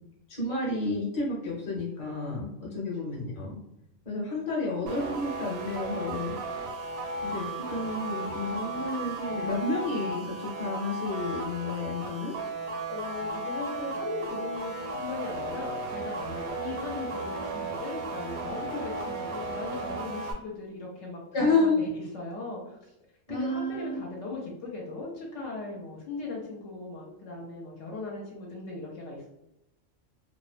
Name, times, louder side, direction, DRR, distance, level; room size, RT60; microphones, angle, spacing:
voice 1, 0.3-3.6 4.0-6.4 7.2-12.3 21.3-21.8 23.3-24.0, left 2 dB, 30° left, -5 dB, 0.7 m, -30 dB
sound 1, 4.9-20.3, right 2 dB, 85° right, 1.0 m, -35 dB
voice 2, 12.9-22.9 23.3-29.3, left 3 dB, 70° left, -2 dB, 0.9 m, -38 dB
2.4 x 2.1 x 2.4 m, 0.87 s
omnidirectional pair, 1.4 m